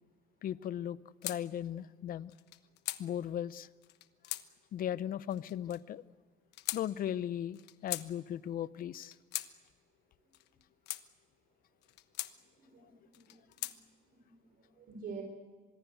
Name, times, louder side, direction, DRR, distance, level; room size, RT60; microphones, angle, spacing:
voice 1, 0.4-2.3 3.0-3.7 4.7-6.0 6.7-9.2, left 10 dB, 60° left, 17 dB, 0.8 m, -37 dB
sound 1, 1.2-1.4 2.3-3.0 3.8-4.5 5.3-5.8 6.5-6.8 7.5-8.1 8.9-9.5 10.3-11.0 11.8-12.3 13.1-13.8, left 15 dB, 85° left, 1.2 m, -40 dB
voice 2, 13.1-13.8 14.2-15.2, right 5 dB, 60° right, 3 dB, 4.3 m, -48 dB
25.5 x 21.5 x 8.1 m, 1.5 s
cardioid pair, 110°, 17 cm